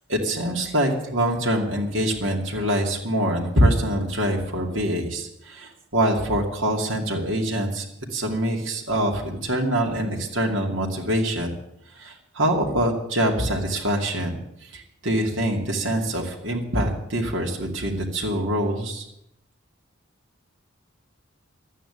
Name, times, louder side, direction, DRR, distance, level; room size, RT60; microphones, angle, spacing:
voice 1, 0.1-7.8 8.1-11.5 11.9-14.4 14.7-19.0, right 1 dB, 70° right, -1 dB, 2.5 m, -24 dB
12.5 x 9.2 x 9.8 m, 0.78 s
head